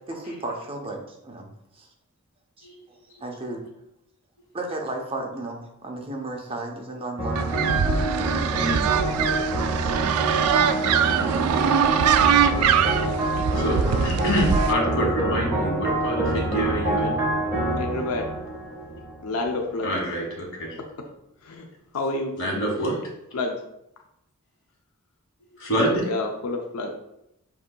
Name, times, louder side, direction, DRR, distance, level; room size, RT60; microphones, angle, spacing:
voice 1, 0.1-1.5 1.8-1.9 2.6-3.6 4.5-7.5, right 2 dB, 25° right, 0 dB, 0.7 m, -34 dB
sound 1, 7.2-19.7, right 1 dB, 10° right, 1.3 m, -27 dB
sound 2, 7.4-14.7, right 8 dB, 80° right, 0.3 m, -22 dB
voice 2, 8.6-8.9 13.5-17.2 19.8-20.8 22.4-23.0 25.5-26.0, equal, 60° left, -1 dB, 1.5 m, -26 dB
voice 3, 17.8-18.3 19.2-19.9 21.5-21.6 21.9-22.3 23.3-23.6 26.0-26.9, left 2 dB, 85° left, 2 dB, 0.5 m, -28 dB
7.7 x 2.7 x 2.2 m, 0.82 s
head